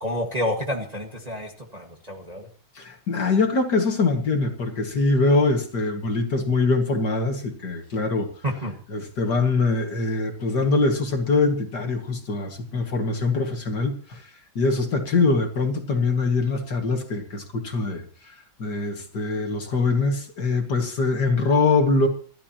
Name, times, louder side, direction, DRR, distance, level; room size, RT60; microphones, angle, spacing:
voice 1, 0.0-2.5 8.4-8.8, equal, 20° right, 1 dB, 1.8 m, -29 dB
voice 2, 2.8-8.3 8.9-14.3 14.6-22.1, left 3 dB, 50° left, 4 dB, 2.5 m, -23 dB
28.0 x 12.5 x 3.0 m, 0.41 s
omnidirectional pair, 2.4 m